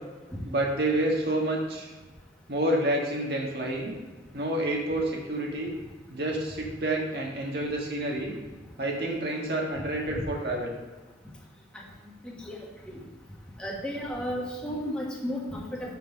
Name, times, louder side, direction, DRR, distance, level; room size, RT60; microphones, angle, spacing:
voice 1, 0.4-1.9 2.5-3.9 4.3-5.7 6.1-8.4 8.8-10.7, right 1 dB, 60° right, -1 dB, 1.7 m, -28 dB
voice 2, 12.2-12.6 12.8-13.0 13.6-16.0, equal, 5° left, -4 dB, 1.5 m, -33 dB
5.7 x 5.6 x 6.6 m, 1.3 s
head